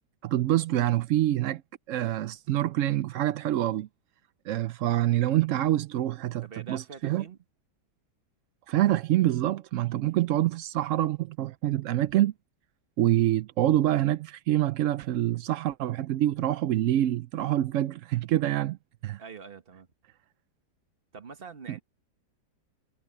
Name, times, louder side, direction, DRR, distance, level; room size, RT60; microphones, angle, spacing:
voice 1, 0.2-1.6 1.9-3.9 4.5-7.2 8.7-12.3 13.0-18.8 19.0-19.2 21.7-21.8, right 13 dB, 75° right, 0.7 m, -26 dB
voice 2, 6.4-7.4 19.2-19.9 21.1-21.8, right 5 dB, 35° right, 1.4 m, -44 dB
omnidirectional pair, 1.8 m